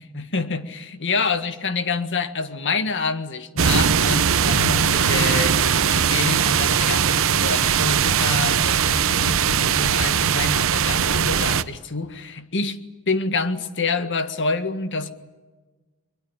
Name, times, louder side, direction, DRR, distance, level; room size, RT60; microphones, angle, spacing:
voice 1, 0.0-12.8 13.1-15.1, left 4 dB, 60° left, 1.8 m, -27 dB
sound 1, 3.6-11.6, right 7 dB, 65° right, 0.9 m, -20 dB
22.5 x 22.5 x 8.9 m
head